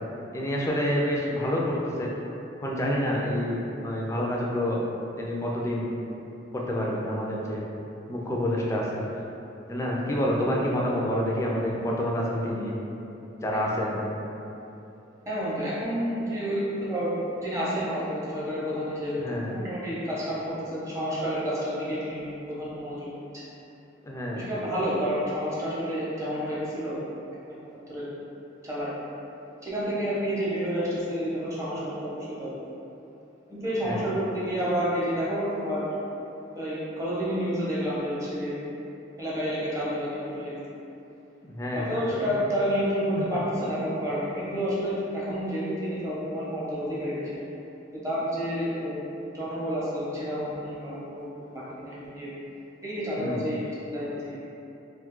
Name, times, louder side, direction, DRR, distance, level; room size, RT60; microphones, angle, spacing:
voice 1, 0.3-2.1 2.6-4.8 5.2-5.9 6.5-7.6 8.1-9.0 9.7-12.7 13.4-14.1 19.2-19.6 24.0-24.5 33.8-34.0 41.4-42.4 53.2-53.4, equal, 15° left, -3 dB, 0.3 m, -28 dB
voice 2, 15.3-17.1 17.4-23.1 23.4-23.5 24.3-27.0 27.5-28.0 28.6-28.9 29.6-32.5 33.5-35.8 36.5-38.5 39.2-40.6 41.7-47.3 48.0-49.0 49.3-52.3 52.8-54.4, equal, 15° right, -9 dB, 0.7 m, -30 dB
2.6 x 2.3 x 3.6 m, 2.9 s
head